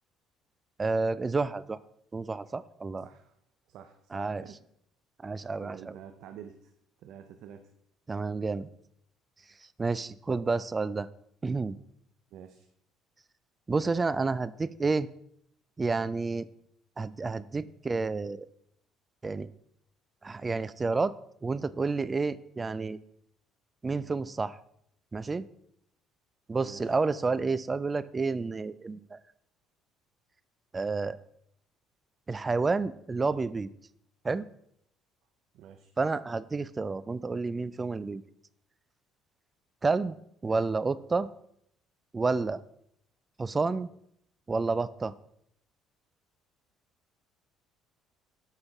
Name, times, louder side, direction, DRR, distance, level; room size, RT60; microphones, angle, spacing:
voice 1, 0.8-1.8 2.1-3.1 4.1-4.4 5.2-5.9 8.1-8.7 9.8-11.1 11.4-11.8 13.7-15.1 15.8-16.5 17.0-18.5 19.2-19.5 20.2-21.1 21.4-23.0 23.8-24.6 25.1-25.5 26.5-29.2 30.7-31.2 32.3-33.7 34.2-34.5 36.0-38.2 39.8-40.2 40.4-41.3 42.1-42.6 43.4-43.9 44.5-45.1, right 4 dB, 25° right, 17 dB, 0.3 m, -30 dB
voice 2, 3.0-3.4 3.7-4.6 5.6-6.7 7.0-7.7 12.3-12.7 26.6-26.9 35.5-35.9 40.5-40.6, right 9 dB, 70° right, 7 dB, 0.6 m, -48 dB
8.0 x 5.7 x 3.5 m, 0.72 s
cardioid pair, 105°, 0 cm